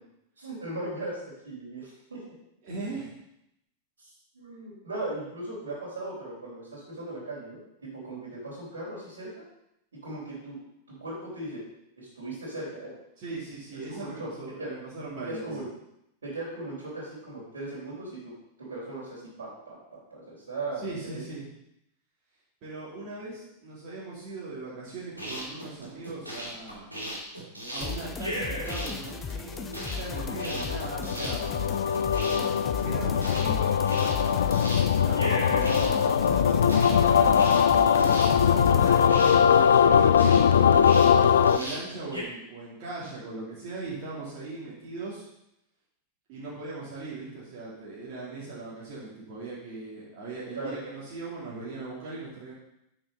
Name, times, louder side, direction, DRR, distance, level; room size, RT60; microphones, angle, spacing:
voice 1, 0.4-2.2 4.0-9.4 10.0-10.6 11.0-11.6 12.0-12.9 13.9-14.3 14.6-14.7 15.2-15.7 16.2-18.3 18.6-21.2 23.0-23.1 50.5-50.9, right 2 dB, 70° right, -10 dB, 4.1 m, -38 dB
voice 2, 2.6-3.1 13.2-15.7 20.8-21.5 22.6-26.9 27.7-31.5 32.2-40.1 40.9-45.3 46.3-52.5, right 3 dB, 45° right, -7 dB, 2.8 m, -39 dB
sound 1, 25.1-42.2, equal, 85° right, 3.2 m, -37 dB
sound 2, 27.8-39.1, left 6 dB, 20° left, 0.6 m, -38 dB
sound 3, 30.0-41.6, left 7 dB, 65° left, 0.5 m, -21 dB
8.7 x 6.4 x 5.4 m, 0.81 s
figure-of-eight pair, 90°, 0 cm